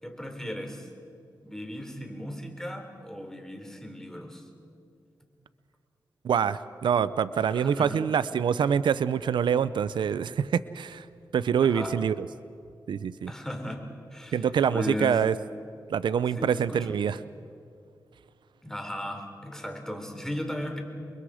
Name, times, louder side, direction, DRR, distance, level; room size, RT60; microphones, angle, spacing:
voice 1, 0.0-0.9 1.4-4.5 7.5-8.0 11.6-12.0 13.3-15.3 16.3-17.0 18.6-20.8, left 1 dB, 5° left, 4 dB, 3.5 m, -37 dB
voice 2, 6.2-11.0 11.3-12.1 12.9-13.3 14.3-15.3 15.9-17.2, right 7 dB, 90° right, 16 dB, 0.5 m, -25 dB
29.0 x 22.5 x 4.9 m, 2.4 s
cardioid pair, 60°, 8 cm